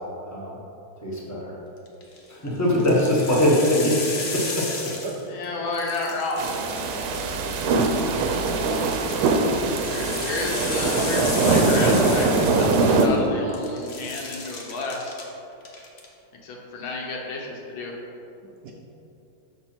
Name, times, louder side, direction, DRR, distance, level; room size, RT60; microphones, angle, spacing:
voice 1, 1.0-1.5 2.3-3.9 4.3-4.7, left 1 dB, 10° left, -5 dB, 0.9 m, -22 dB
sound 1, 1.9-2.2 2.7-5.4 5.7-7.6 8.7-13.3 13.5-15.2 15.6-16.1, left 3 dB, 50° left, 0.8 m, -34 dB
voice 2, 5.3-6.5 9.9-15.1 16.4-18.0, left 2 dB, 75° left, -1 dB, 1.8 m, -31 dB
sound 2, 6.4-13.1, right 3 dB, 90° right, 1.5 m, -22 dB
voice 3, 9.9-10.4 18.6-18.7, right 5 dB, 70° right, 1 dB, 1.0 m, -41 dB
6.7 x 6.0 x 4.4 m, 2.9 s
omnidirectional pair, 2.2 m